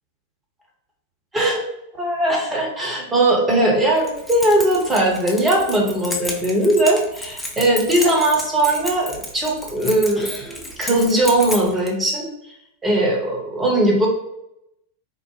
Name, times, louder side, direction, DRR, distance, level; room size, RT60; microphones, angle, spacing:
voice 1, 2.0-10.3 10.8-12.3 12.8-14.1, right 1 dB, 15° right, -1 dB, 1.0 m, -19 dB
Keys jangling, 4.0-11.9, left 1 dB, 10° left, 0.6 m, -32 dB
3.6 x 2.0 x 3.1 m, 0.83 s
figure-of-eight pair, 90°, 0 cm